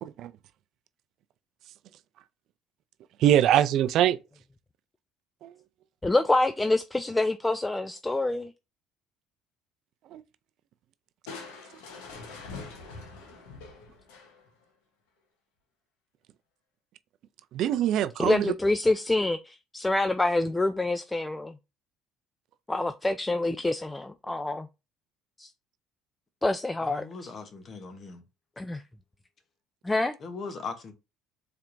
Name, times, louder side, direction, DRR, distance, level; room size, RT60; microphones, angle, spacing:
voice 1, 3.2-4.2 5.4-5.5 10.1-10.2 17.5-18.5, right 11 dB, 65° right, 0.4 m, -23 dB
voice 2, 6.0-8.5 18.2-21.5 22.7-24.7 25.4-25.5 26.4-27.3 28.6-28.8 29.8-30.1, left 2 dB, 15° left, 0.3 m, -26 dB
Crushing, 11.3-14.6, left 4 dB, 85° left, 1.1 m, -44 dB
voice 3, 26.8-28.2 30.2-30.9, left 4 dB, 45° left, 1.0 m, -39 dB
4.3 x 3.4 x 2.6 m
supercardioid pair, 90°, 0 cm